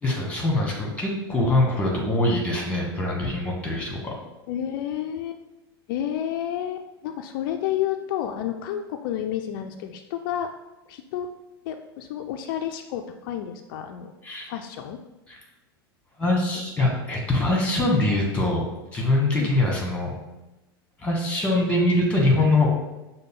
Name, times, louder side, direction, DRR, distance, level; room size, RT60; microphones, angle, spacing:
voice 1, 0.0-4.1 14.2-14.5 15.3-15.4 16.2-18.7 18.9-20.1 21.0-22.7, left 2 dB, 10° left, -1 dB, 1.5 m, -23 dB
voice 2, 4.5-5.4 5.9-10.5 10.9-11.3 11.7-14.1 14.5-15.0 16.5-16.7 19.3-19.5, left 10 dB, 60° left, 6 dB, 0.4 m, -30 dB
6.4 x 2.2 x 3.7 m, 1.0 s
hypercardioid pair, 100°, 13 cm